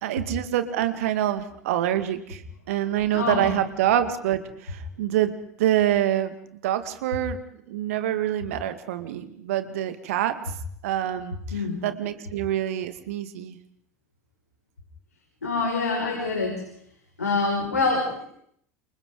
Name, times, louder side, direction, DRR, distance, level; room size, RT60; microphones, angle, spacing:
voice 1, 0.0-2.4 2.7-5.3 5.6-7.4 7.7-10.3 10.8-13.6, right 11 dB, 60° right, 10 dB, 2.0 m, -26 dB
voice 2, 3.1-3.5 11.5-11.8 15.4-16.6 17.2-18.2, left 3 dB, 80° left, -1 dB, 5.6 m, -25 dB
29.0 x 28.5 x 3.9 m, 0.68 s
figure-of-eight pair, 80°, 9 cm